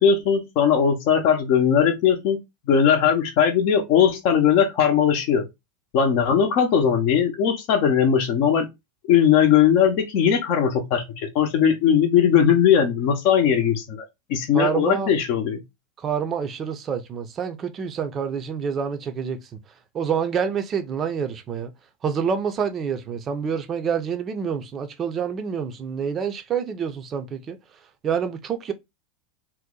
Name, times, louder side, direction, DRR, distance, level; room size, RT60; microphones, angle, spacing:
voice 1, 0.0-2.4 2.7-5.5 5.9-8.7 9.1-14.0 14.3-15.6, left 8 dB, 55° left, 0.6 m, -19 dB
voice 2, 14.5-15.1 16.0-19.4 19.9-21.7 22.0-27.6 28.0-28.7, right 7 dB, 30° right, 0.5 m, -27 dB
2.7 x 2.0 x 3.7 m
hypercardioid pair, 90°, 0 cm